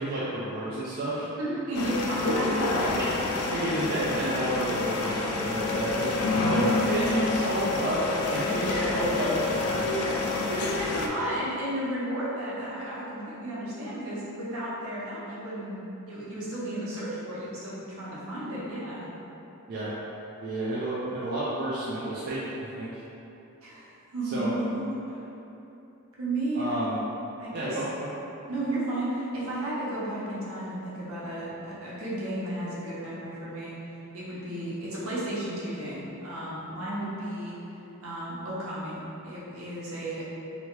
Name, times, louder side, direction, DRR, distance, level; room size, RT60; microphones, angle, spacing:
voice 1, 0.0-1.3 3.0-3.1 3.5-9.3 19.7-20.0 20.4-23.0 24.2-24.5 26.6-27.0 27.5-28.1, right 1 dB, 45° right, -9 dB, 0.3 m, -31 dB
voice 2, 1.4-2.9 8.4-8.9 9.6-19.1 23.6-25.2 26.2-26.8 27.4-27.8 28.5-33.7 34.1-37.5 38.0-40.2, right 1 dB, 75° right, -8 dB, 0.8 m, -33 dB
sound 1, 1.7-11.1, left 3 dB, 80° left, 0.3 m, -28 dB
2.8 x 2.2 x 2.9 m, 2.9 s
head